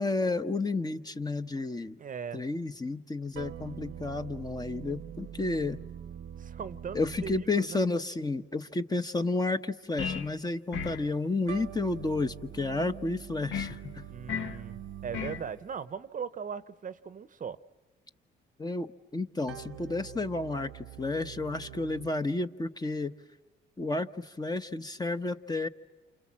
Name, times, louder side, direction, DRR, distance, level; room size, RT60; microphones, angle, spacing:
voice 1, 0.0-2.0 2.3-5.8 6.9-14.0 18.6-23.1 23.8-25.7, left 2 dB, 20° left, 9 dB, 1.0 m, -31 dB
voice 2, 2.0-2.4 6.4-7.8 14.1-17.6, right 7 dB, 40° right, 14 dB, 0.8 m, -39 dB
sound 1, 3.3-8.0 11.5-15.8 19.5-22.1, right 10 dB, 80° right, 0.9 m, -44 dB
sound 2, 10.0-10.3 10.7-11.1 13.5-13.8 14.3-14.6 15.1-15.4, left 6 dB, 75° left, 1.5 m, -34 dB
28.5 x 26.5 x 7.5 m, 1.3 s
cardioid pair, 90°, 20 cm